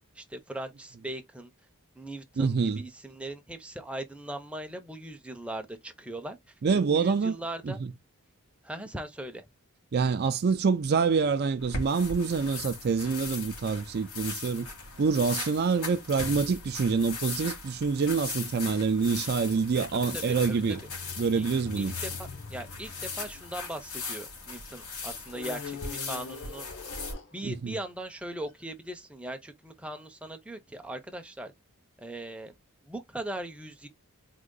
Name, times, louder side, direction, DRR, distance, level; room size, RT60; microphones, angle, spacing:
voice 1, 0.1-1.5 1.9-6.5 6.9-7.8 8.6-9.4 15.8-15.9 20.1-20.6 21.4-21.5 21.8-26.7 27.3-31.5 32.0-32.6 32.8-33.9, right 1 dB, 5° right, 0.6 m, -39 dB
voice 2, 2.4-2.8 6.6-7.4 7.6-7.9 9.9-14.7 15.0-20.8 21.2-21.9 27.4-27.8, right 5 dB, 45° right, 0.4 m, -26 dB
sound 1, 11.6-27.1, left 4 dB, 80° left, 2.1 m, -39 dB
sound 2, 19.8-24.5 25.3-27.8 28.5-28.6, left 5 dB, 55° left, 0.8 m, -44 dB
3.7 x 2.9 x 3.8 m
head